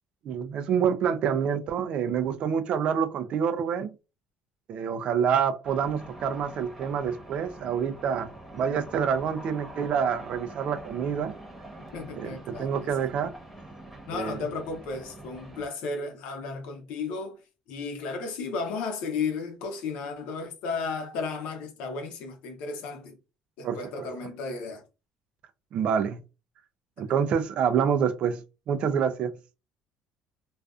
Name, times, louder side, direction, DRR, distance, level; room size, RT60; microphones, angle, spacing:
voice 1, 0.2-3.9 4.7-11.3 12.1-13.3 14.1-14.4 23.6-23.8 25.7-26.2 27.0-28.4 28.7-29.3, right 7 dB, 55° right, 0.3 m, -27 dB
sound 1, 5.6-15.7, right 1 dB, 5° right, 1.0 m, -45 dB
voice 2, 11.9-12.8 14.1-17.4 17.7-23.2 23.6-24.8, left 4 dB, 75° left, 0.7 m, -34 dB
2.4 x 2.3 x 2.3 m
supercardioid pair, 100°, 2 cm